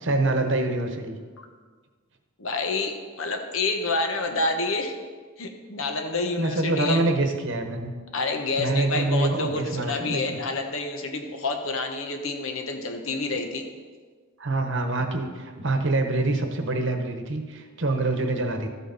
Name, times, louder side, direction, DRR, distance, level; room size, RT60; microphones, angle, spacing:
voice 1, 0.0-1.2 6.4-7.9 8.6-10.4 14.4-18.7, right 2 dB, 60° right, 5 dB, 1.1 m, -25 dB
voice 2, 2.4-4.9 5.4-7.0 8.1-13.7, left 3 dB, 70° left, 5 dB, 1.2 m, -28 dB
13.5 x 8.3 x 4.1 m, 1.5 s
head